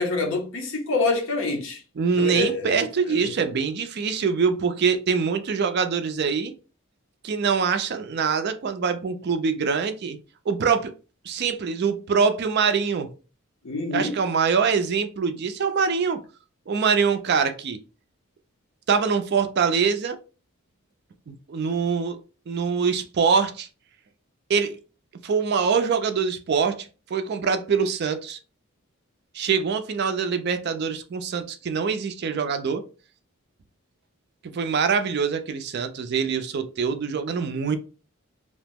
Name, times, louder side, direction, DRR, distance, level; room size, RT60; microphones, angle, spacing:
voice 1, 0.0-1.8 2.1-3.3 13.6-14.2, left 3 dB, 60° left, 0.7 m, -26 dB
voice 2, 2.0-6.5 7.2-10.2 10.5-10.9 11.2-13.1 13.9-16.2 16.7-17.8 18.9-20.2 21.3-22.2 22.5-23.7 24.5-24.8 25.2-28.4 29.3-32.9 34.4-37.8, right 6 dB, 50° right, 0.4 m, -24 dB
2.8 x 2.0 x 3.4 m
head